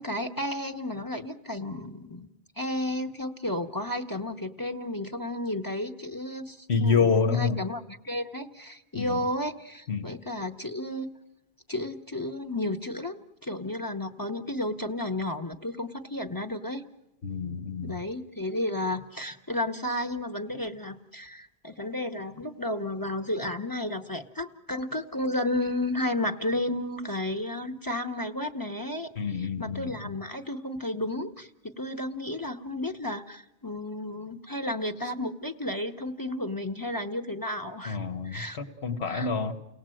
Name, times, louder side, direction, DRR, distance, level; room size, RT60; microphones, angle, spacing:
voice 1, 0.0-2.3 2.6-11.1 11.7-16.8 17.8-38.0 38.2-38.6 39.1-39.3, left 1 dB, 20° left, 7 dB, 0.9 m, -32 dB
voice 2, 6.7-7.6 8.9-9.2 9.9-10.1 17.2-18.0 29.2-30.2 37.8-39.5, left 5 dB, 90° left, 8 dB, 1.7 m, -27 dB
30.0 x 18.5 x 7.7 m, 0.93 s
omnidirectional pair, 1.1 m